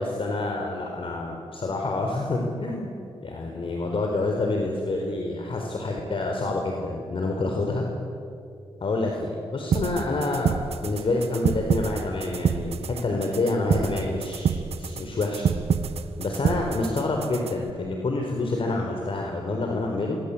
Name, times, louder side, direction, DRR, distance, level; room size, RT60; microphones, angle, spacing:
voice 1, 0.0-7.9 8.8-10.5 10.8-15.5 16.2-20.2, left 2 dB, 55° left, 1 dB, 4.3 m, -27 dB
sound 1, 9.7-17.7, right 7 dB, 75° right, 1.3 m, -28 dB
27.0 x 25.0 x 8.6 m, 2.6 s
cardioid pair, 65°, 11 cm